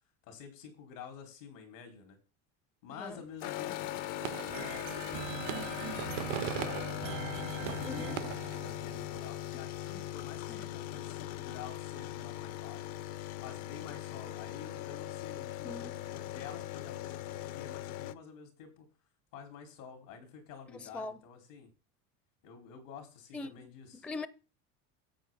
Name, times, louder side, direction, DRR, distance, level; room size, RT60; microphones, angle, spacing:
voice 1, 0.3-2.2 2.8-4.0 4.5-6.8 7.4-12.9 13.4-18.9 19.3-21.7 22.4-24.1, left 6 dB, 90° left, 4.8 m, -49 dB
sound 1, 3.4-18.1, left 13 dB, 65° left, 0.8 m, -40 dB
sound 2, 4.2-9.3, right 19 dB, 75° right, 0.6 m, -42 dB
sound 3, 4.5-9.1, right 13 dB, 90° right, 1.4 m, -43 dB
voice 2, 7.9-8.2 10.5-10.6 15.6-16.0 20.7-21.2 23.3-23.5 24.0-24.3, left 3 dB, 5° left, 0.4 m, -41 dB
10.0 x 8.0 x 4.0 m
supercardioid pair, 125°, 38 cm